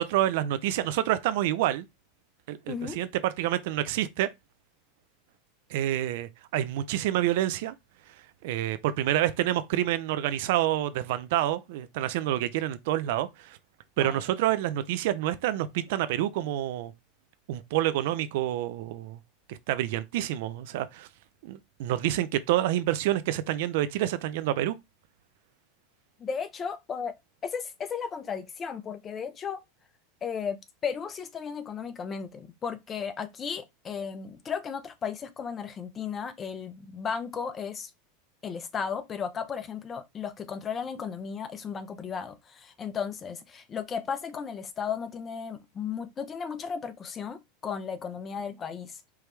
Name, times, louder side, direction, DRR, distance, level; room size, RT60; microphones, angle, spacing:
voice 1, 0.0-1.9 2.5-4.3 5.7-7.7 8.4-13.6 14.0-16.9 17.5-19.2 19.5-21.1 21.4-24.8, right 13 dB, 65° right, 0.5 m, -28 dB
voice 2, 2.7-3.0 14.0-14.2 26.2-27.1 27.4-29.6 30.2-37.9 38.4-49.0, left 6 dB, 30° left, 0.7 m, -35 dB
4.7 x 3.0 x 3.3 m
hypercardioid pair, 105°, 0 cm